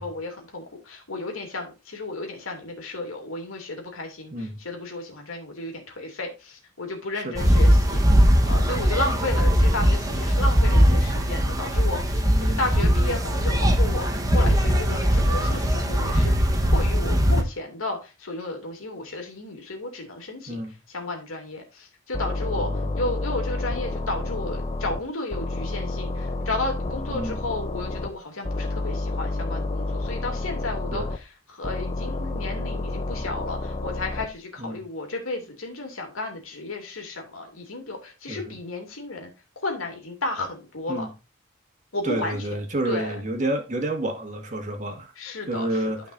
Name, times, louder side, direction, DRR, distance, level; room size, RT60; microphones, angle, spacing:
voice 1, 0.0-16.3 16.7-20.6 20.9-39.3 39.6-41.1 41.9-42.6 42.8-43.2 45.2-45.8, left 2 dB, 85° left, 2.7 m, -33 dB
sound 1, 7.4-17.4, equal, 15° right, 1.1 m, -20 dB
voice 2, 12.2-12.6 20.5-20.7 22.5-22.9 27.1-27.4 30.9-31.1 34.6-34.8 38.3-38.4 40.9-41.1 42.0-45.1 45.5-46.0, right 1 dB, 35° right, 1.8 m, -29 dB
sound 2, 22.1-25.0 25.3-28.1 28.4-31.2 31.6-34.3, left 2 dB, 25° left, 0.7 m, -30 dB
13.0 x 5.4 x 2.6 m
head